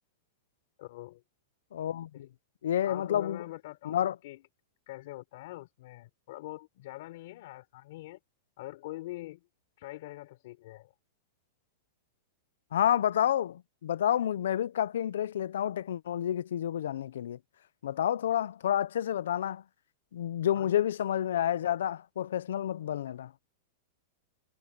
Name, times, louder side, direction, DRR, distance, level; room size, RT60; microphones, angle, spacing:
voice 1, 0.8-1.2 2.1-2.2 2.9-4.4 4.9-8.2 8.6-9.5 9.8-10.9 20.6-20.7, left 17 dB, 55° left, 3.6 m, -44 dB
voice 2, 1.7-2.3 2.6-3.4 3.8-4.1 12.7-17.4 17.8-19.6 20.1-23.3, left 10 dB, 90° left, 0.5 m, -29 dB
supercardioid pair, 170°, 0 cm